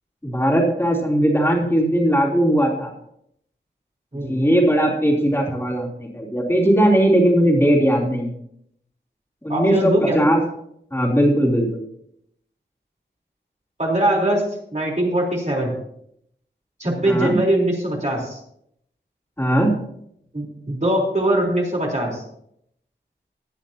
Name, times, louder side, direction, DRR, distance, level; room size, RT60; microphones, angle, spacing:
voice 1, 0.2-2.9 4.2-8.4 9.4-10.4 10.9-11.9 17.0-17.4 19.4-19.7, right 1 dB, 10° left, -3 dB, 3.3 m, -19 dB
voice 2, 9.5-10.2 13.8-14.4 14.7-15.7 16.8-18.4 20.3-22.2, right 1 dB, 35° right, -2 dB, 3.8 m, -21 dB
17.5 x 10.0 x 2.9 m, 0.72 s
wide cardioid pair, 60°, 20 cm